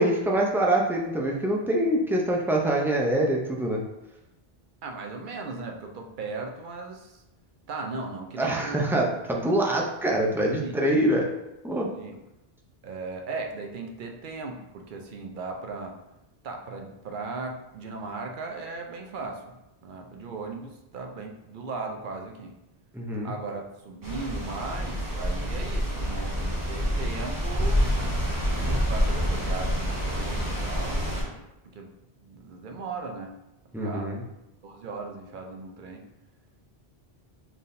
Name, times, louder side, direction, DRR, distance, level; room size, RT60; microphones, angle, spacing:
voice 1, 0.0-3.8 8.4-11.2 11.6-11.9 22.9-23.3 33.7-34.2, right 1 dB, 5° right, -2 dB, 0.3 m, -24 dB
voice 2, 4.8-7.2 7.7-8.9 10.6-10.8 12.0-12.2 12.8-16.0 16.4-22.6 23.2-27.8 28.3-31.4 31.7-31.9 32.2-33.3 33.8-34.2 34.6-36.0, right 3 dB, 60° right, 3 dB, 0.6 m, -37 dB
sound 1, 24.0-31.2, equal, 20° right, 0.9 m, -27 dB
4.3 x 3.5 x 2.6 m, 0.92 s
omnidirectional pair, 1.1 m